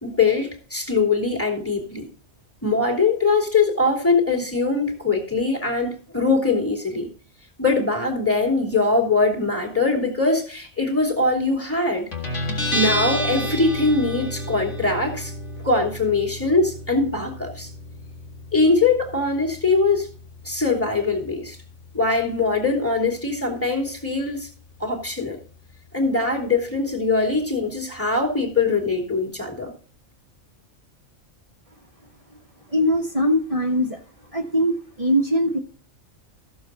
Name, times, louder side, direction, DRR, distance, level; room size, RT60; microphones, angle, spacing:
voice 1, 0.0-2.1 2.6-7.1 7.6-12.1 12.7-15.3 15.6-17.7 18.5-20.1 20.4-21.6 21.9-24.5 24.8-25.4 25.9-29.7, left 3 dB, 10° left, 3.0 m, -22 dB
Guitar, 12.1-29.3, equal, 60° left, 2.3 m, -33 dB
voice 2, 32.7-34.0 34.3-35.6, equal, 25° right, 1.5 m, -21 dB
14.5 x 7.2 x 4.0 m
omnidirectional pair, 1.4 m